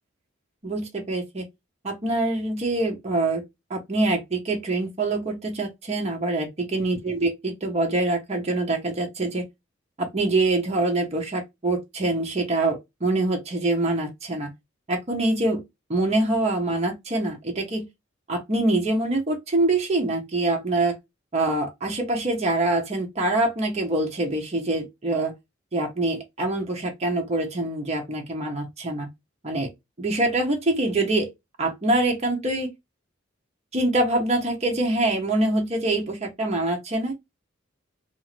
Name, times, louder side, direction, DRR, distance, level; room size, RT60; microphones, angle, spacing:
voice 1, 0.6-1.4 1.8-3.4 3.7-9.4 10.0-14.5 14.9-15.6 15.9-17.8 18.3-21.0 21.3-25.3 25.7-29.1 29.4-29.7 30.0-31.3 31.6-32.7 33.7-37.1, right 2 dB, 35° right, 0.8 m, -25 dB
2.6 x 2.5 x 2.9 m
head